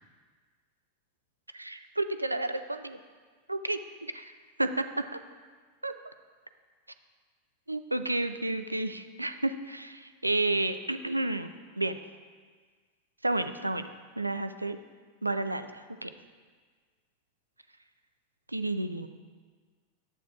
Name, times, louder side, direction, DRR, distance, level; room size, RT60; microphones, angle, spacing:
voice 1, 1.5-3.0 3.5-4.3 4.6-5.0 5.8-5.9 7.7-12.0 13.2-13.9 14.2-14.8 15.2-16.1 18.5-19.1, right 2 dB, 90° right, 10 dB, 0.3 m, -31 dB
11.5 x 8.1 x 2.3 m, 1.5 s
figure-of-eight pair, 90°, 0 cm